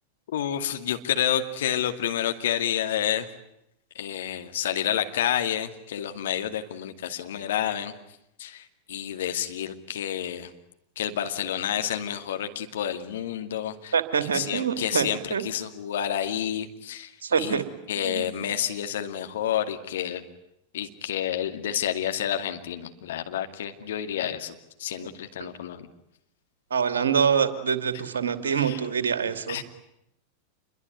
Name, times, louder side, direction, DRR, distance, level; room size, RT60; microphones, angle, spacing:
voice 1, 0.3-3.3 3.9-7.9 8.4-10.5 11.0-13.9 14.2-17.1 17.4-17.6 17.9-20.2 20.7-25.9 28.5-28.8 29.5-29.6, left 10 dB, 60° left, 6 dB, 2.3 m, -29 dB
voice 2, 13.9-15.4 17.2-17.6 18.0-18.4 26.7-29.6, right 7 dB, 65° right, 10 dB, 2.6 m, -25 dB
28.0 x 22.0 x 9.6 m, 0.80 s
figure-of-eight pair, 90°, 0 cm